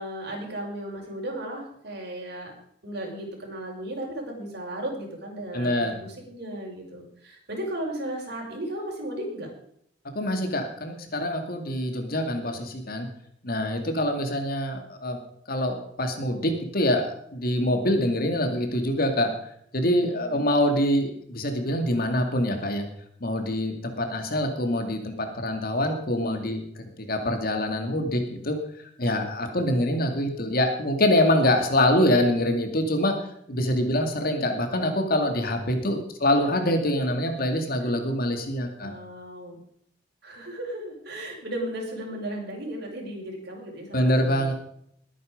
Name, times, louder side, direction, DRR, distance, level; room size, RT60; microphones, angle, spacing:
voice 1, 0.0-2.5 2.8-9.5 20.1-20.5 36.5-36.8 38.8-39.6 40.2-44.5, right 1 dB, 60° right, -1 dB, 5.7 m, -35 dB
voice 2, 5.5-5.9 10.1-13.1 13.4-15.2 15.5-19.3 19.7-22.8 23.2-28.6 29.0-33.2 33.5-38.9 43.9-44.5, left 1 dB, 55° left, 5 dB, 2.4 m, -25 dB
21.0 x 9.2 x 5.3 m, 0.69 s
head